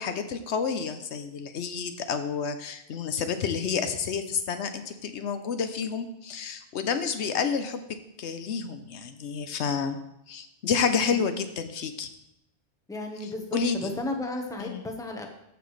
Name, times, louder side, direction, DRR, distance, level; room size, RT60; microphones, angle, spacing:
voice 1, 0.0-10.0 10.3-12.1 13.5-13.9 14.6-14.8, left 6 dB, 80° left, 9 dB, 1.0 m, -29 dB
voice 2, 12.9-15.3, left 2 dB, 5° left, 2 dB, 1.0 m, -34 dB
14.0 x 6.0 x 3.2 m, 0.83 s
omnidirectional pair, 1.2 m